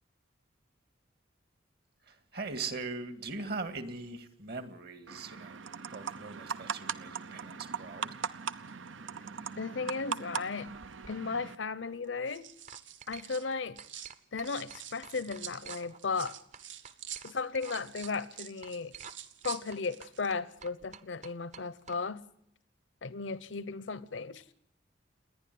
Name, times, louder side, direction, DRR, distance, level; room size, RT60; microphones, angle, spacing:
voice 1, 2.1-5.6 5.9-8.1, right 3 dB, 55° right, 2.0 m, -40 dB
sound 1, 5.1-11.5, right 6 dB, 85° right, 0.8 m, -39 dB
voice 2, 9.6-10.7 11.1-12.5 13.1-13.8 14.3-16.4 17.2-18.9 19.4-22.3 23.0-24.4, left 4 dB, 75° left, 0.8 m, -35 dB
sound 2, 10.7-11.2 12.0-14.1 14.4-20.3 20.6-20.9, right 10 dB, 70° right, 1.3 m, -47 dB
sound 3, 11.9-12.2 12.7-13.5 13.8-16.0 16.3-17.8 18.0-18.1 18.6-19.2 19.4-22.0, right 6 dB, 40° right, 0.8 m, -50 dB
29.0 x 10.5 x 9.4 m
head